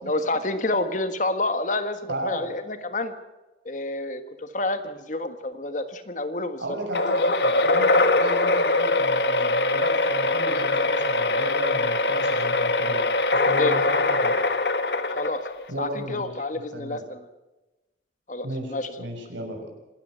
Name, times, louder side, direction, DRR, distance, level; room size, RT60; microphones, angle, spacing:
voice 1, 0.0-3.1 3.6-6.8 13.4-13.7 15.1-15.4 15.8-17.3 18.3-18.9, left 2 dB, 40° left, 10 dB, 1.5 m, -29 dB
voice 2, 2.1-2.5 6.6-13.0 13.4-14.3 15.7-16.3 16.7-17.0 18.4-19.7, right 1 dB, 85° right, 2 dB, 6.3 m, -35 dB
sound 1, 6.9-15.7, left 2 dB, 60° left, 1.6 m, -22 dB
26.5 x 13.0 x 7.9 m, 1.1 s
head